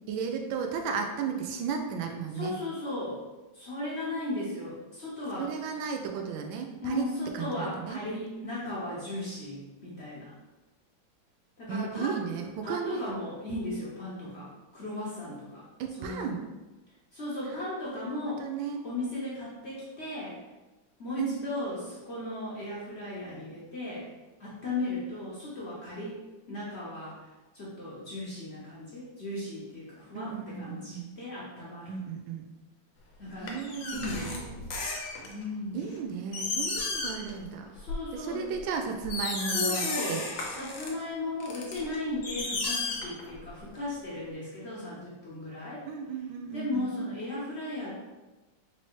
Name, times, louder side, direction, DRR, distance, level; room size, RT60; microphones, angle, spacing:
voice 1, 0.1-2.5 5.4-7.0 7.3-8.0 11.7-13.0 14.3-14.4 15.8-16.4 17.5-17.6 17.9-18.8 21.2-21.4 30.1-31.1 31.9-32.5 33.4-34.5 35.7-37.7 38.1-40.2 45.9-46.9, right 6 dB, 90° right, 4 dB, 1.3 m, -35 dB
voice 2, 2.3-3.2 3.5-5.5 6.8-10.3 11.6-12.2 12.6-15.6 16.0-16.4 17.1-18.4 18.8-20.4 21.0-24.1 24.4-26.2 26.5-27.2 27.5-30.3 30.6-31.9 33.2-33.5 33.9-34.5 35.2-35.8 37.7-38.4 39.5-40.2 40.5-45.8 46.5-47.9, left 2 dB, 50° left, -7 dB, 0.9 m, -36 dB
sound 1, 33.5-35.4 35.9-36.0 36.3-37.4 37.7-38.0 38.6-38.7 39.0-40.9 41.4-43.5 43.8-43.9, left 3 dB, 85° left, 1.5 m, -33 dB
4.5 x 2.8 x 3.0 m, 1.1 s
omnidirectional pair, 2.1 m